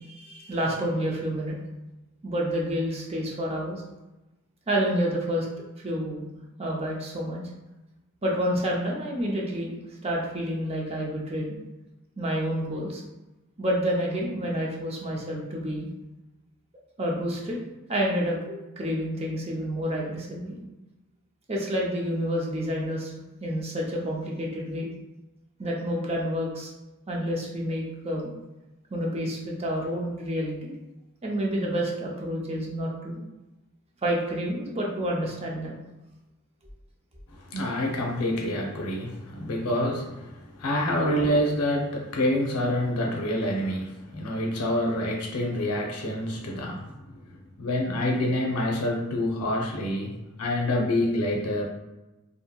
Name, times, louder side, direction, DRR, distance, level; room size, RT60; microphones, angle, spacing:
voice 1, 0.0-1.6 2.2-3.8 4.7-5.5 5.8-6.3 6.6-7.4 8.2-9.7 10.0-11.5 12.2-13.0 13.6-15.9 17.0-17.6 17.9-20.6 21.5-24.9 25.6-26.7 27.1-28.3 28.9-30.7 31.2-33.2 34.0-35.8 40.9-41.2, equal, 30° right, -2 dB, 0.5 m, -29 dB
voice 2, 37.3-46.9 47.6-50.1 50.4-51.6, left 1 dB, 90° left, 0 dB, 0.6 m, -27 dB
2.7 x 2.6 x 2.3 m, 1.0 s
head